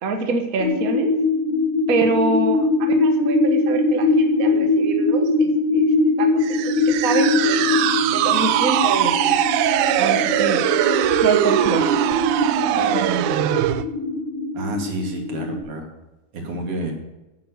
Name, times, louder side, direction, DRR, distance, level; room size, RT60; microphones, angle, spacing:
voice 1, 0.0-1.1 1.9-7.7 8.1-9.4 10.0-10.7 11.2-11.9, right 4 dB, 65° right, 5 dB, 0.8 m, -25 dB
sound 1, 0.6-15.6, left 3 dB, 80° left, 3.3 m, -22 dB
sound 2, 6.4-13.8, right 12 dB, 80° right, 1.9 m, -21 dB
voice 2, 14.5-15.9 16.3-16.9, right 1 dB, 45° right, 3 dB, 3.1 m, -29 dB
9.6 x 9.2 x 8.0 m, 1.0 s
omnidirectional pair, 3.7 m